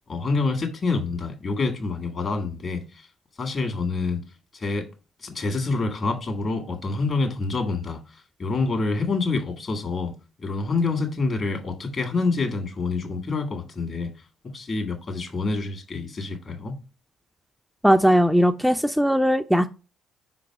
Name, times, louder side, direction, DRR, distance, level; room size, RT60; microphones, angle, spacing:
voice 1, 0.1-3.1 3.4-4.2 4.5-4.9 5.2-10.1 10.4-14.1 14.5-16.8, left 3 dB, 50° left, 1.8 m, -27 dB
voice 2, 17.8-19.7, equal, 5° right, 0.4 m, -19 dB
5.4 x 3.9 x 4.8 m
hypercardioid pair, 55°, 0 cm